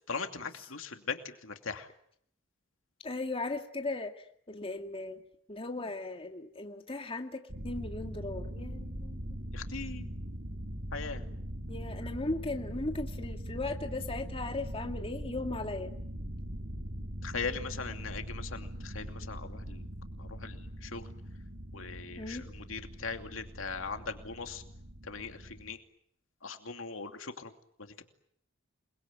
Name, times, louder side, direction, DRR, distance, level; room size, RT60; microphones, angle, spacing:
voice 1, 0.1-1.9 9.5-10.1 10.9-11.2 17.2-19.9 20.2-21.1 21.7-24.6 25.0-25.8 26.4-27.5 27.8-28.0, left 5 dB, 80° left, 6 dB, 2.6 m, -40 dB
voice 2, 3.0-5.2 5.5-9.2 11.7-15.9 22.2-22.5, left 2 dB, 30° left, 4 dB, 2.3 m, -37 dB
sound 1, 7.5-25.8, equal, 55° right, 2.7 m, -41 dB
28.5 x 21.5 x 9.2 m, 0.69 s
head